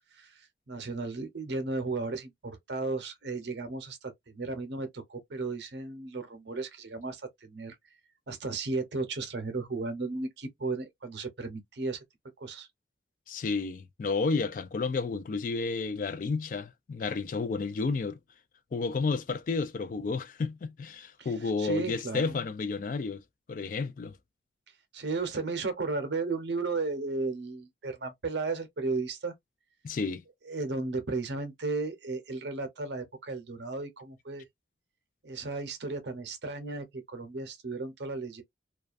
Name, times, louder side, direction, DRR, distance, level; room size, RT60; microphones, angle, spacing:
voice 1, 0.1-7.8 8.3-12.0 12.4-12.7 21.2-21.3 21.6-22.3 24.9-29.3 30.5-34.5 35.2-38.4, right 3 dB, 75° right, 0.7 m, -34 dB
voice 2, 13.3-18.2 18.7-23.2 23.5-24.2 29.8-30.2, left 4 dB, 45° left, 0.3 m, -31 dB
2.3 x 2.3 x 2.4 m
head